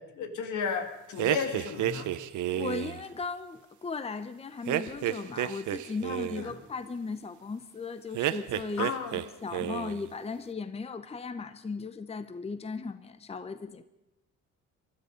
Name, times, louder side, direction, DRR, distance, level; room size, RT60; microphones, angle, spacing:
voice 1, 0.0-2.1 6.4-6.5 8.8-9.2, left 6 dB, 75° left, 6 dB, 2.0 m, -34 dB
sound 1, 1.2-3.0 4.7-6.5 8.1-9.3 9.5-10.0, right 12 dB, 75° right, 0.8 m, -31 dB
voice 2, 2.5-8.9 9.4-13.8, left 4 dB, 20° left, 11 dB, 0.7 m, -37 dB
20.5 x 12.5 x 5.2 m, 0.97 s
cardioid pair, 90°, 30 cm